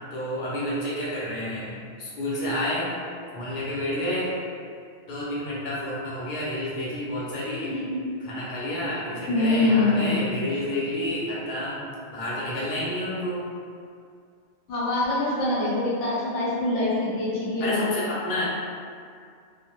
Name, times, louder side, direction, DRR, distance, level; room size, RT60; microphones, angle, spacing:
voice 1, 0.1-2.9 3.3-4.3 5.1-7.8 8.3-11.8 12.1-13.4 17.6-18.5, left 1 dB, 55° left, -8 dB, 0.6 m, -30 dB
voice 2, 7.6-8.0 9.3-10.4 14.7-18.0, left 2 dB, 70° left, -8 dB, 1.0 m, -24 dB
2.1 x 2.1 x 2.8 m, 2.2 s
omnidirectional pair, 1.3 m